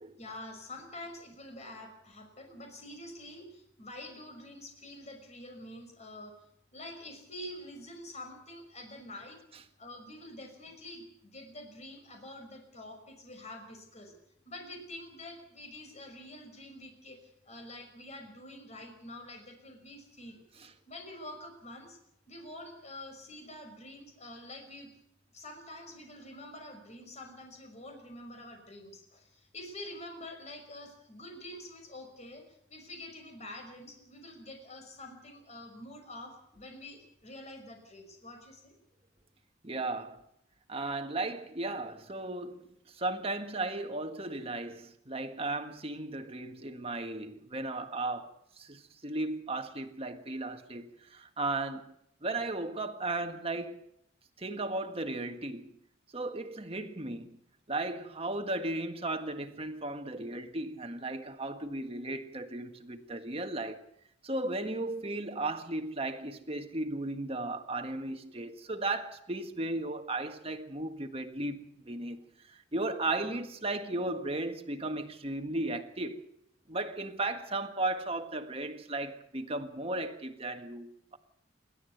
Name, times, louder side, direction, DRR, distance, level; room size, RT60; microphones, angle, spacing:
voice 1, 0.2-6.4 6.7-9.4 9.8-14.1 14.4-22.0 22.3-24.9 25.3-38.7, left 1 dB, 35° left, 5.7 m, -47 dB
voice 2, 39.6-40.2 40.7-48.3 48.6-51.9 52.2-53.8 54.4-55.7 56.1-57.4 57.7-63.8 64.2-72.2 72.4-76.2 76.7-81.2, right 2 dB, 30° right, 1.7 m, -35 dB
28.5 x 12.5 x 8.1 m
head